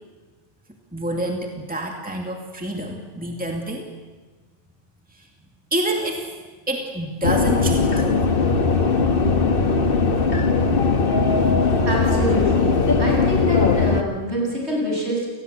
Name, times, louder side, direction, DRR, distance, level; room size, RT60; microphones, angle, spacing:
voice 1, 0.9-3.9 5.1-5.3 5.7-6.3 6.7-9.0, right 1 dB, 5° right, 1 dB, 2.5 m, -28 dB
sound 1, 7.2-14.0, left 4 dB, 45° left, 1.6 m, -19 dB
voice 2, 11.8-15.3, equal, 60° right, -2 dB, 8.3 m, -25 dB
29.0 x 20.5 x 8.3 m, 1.3 s
omnidirectional pair, 1.3 m